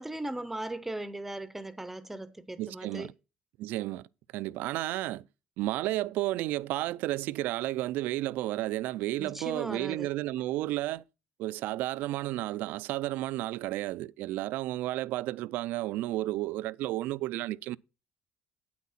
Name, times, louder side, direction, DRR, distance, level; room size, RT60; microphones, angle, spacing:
voice 1, 0.0-3.1 9.2-10.1, right 1 dB, 10° right, 0.6 m, -38 dB
voice 2, 2.6-3.1 3.6-4.1 4.3-5.3 5.6-11.0 11.4-17.8, right 16 dB, 80° right, 0.4 m, -32 dB
9.3 x 8.3 x 4.2 m
cardioid pair, 145°, 3 cm